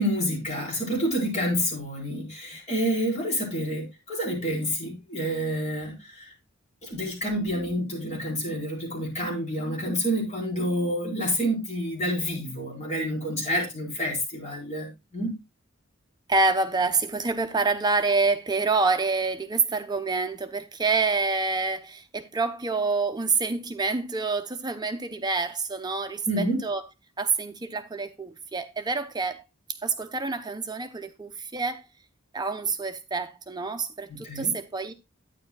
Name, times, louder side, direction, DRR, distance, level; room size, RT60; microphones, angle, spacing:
voice 1, 0.0-6.3 6.8-15.3 26.3-26.6 34.1-34.5, equal, 35° left, 4.5 m, -28 dB
voice 2, 16.3-26.8 27.2-29.4 29.8-31.8 32.3-34.9, right 4 dB, 20° right, 0.7 m, -27 dB
11.5 x 9.6 x 2.2 m
head